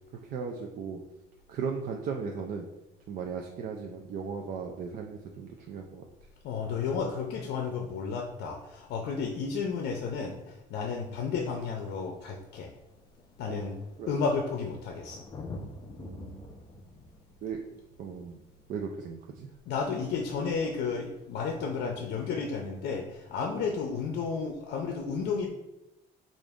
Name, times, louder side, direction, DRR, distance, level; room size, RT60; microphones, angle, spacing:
voice 1, 0.2-1.0 1.5-2.7 3.1-6.1 13.5-13.6 14.0-14.1 16.0-16.4 17.4-17.6 18.0-18.4 18.7-19.5, right 5 dB, 55° right, 2 dB, 0.4 m, -37 dB
voice 2, 6.4-12.7 13.4-13.8 14.1-15.2 19.7-25.5, left 5 dB, 80° left, 2 dB, 0.5 m, -32 dB
Thunder, 12.0-12.1 12.4-19.7 21.4-21.5, left 2 dB, 25° left, 0.4 m, -47 dB
3.7 x 2.5 x 3.5 m, 0.93 s
cardioid pair, 110°, 17 cm